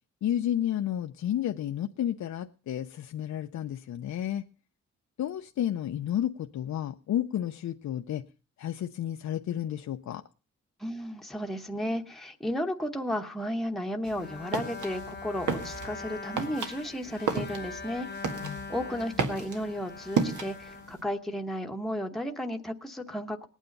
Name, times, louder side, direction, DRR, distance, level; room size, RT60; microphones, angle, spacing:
voice 1, 0.2-4.4 5.2-8.2 8.6-10.2 18.4-18.7, left 11 dB, 70° left, 0.6 m, -31 dB
voice 2, 10.8-18.1 18.7-23.5, equal, ahead, 1.0 m, -33 dB
sound 1, 14.0-21.0, right 5 dB, 80° right, 1.8 m, -34 dB
Bowed string instrument, 14.2-21.6, left 5 dB, 35° left, 0.7 m, -42 dB
18.5 x 9.2 x 5.3 m
wide cardioid pair, 165°, 29 cm